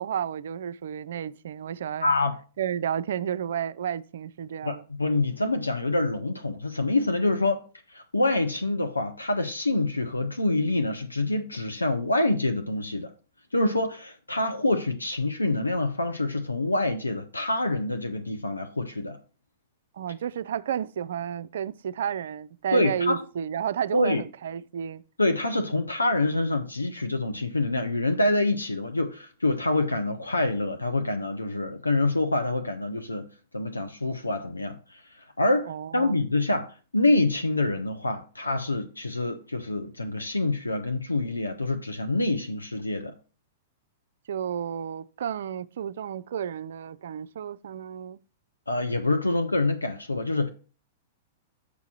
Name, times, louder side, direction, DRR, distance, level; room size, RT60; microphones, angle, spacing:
voice 1, 0.0-2.1 2.6-4.8 19.9-25.0 35.7-36.2 44.3-48.2, right 9 dB, 60° right, 0.3 m, -32 dB
voice 2, 2.0-2.4 4.6-7.6 7.9-13.1 13.5-19.2 22.7-23.2 23.9-24.2 25.2-33.3 33.5-35.0 35.4-36.7 36.9-43.1 48.7-50.5, left 2 dB, 85° left, 0.6 m, -26 dB
8.3 x 4.7 x 4.2 m
figure-of-eight pair, 100°, 0 cm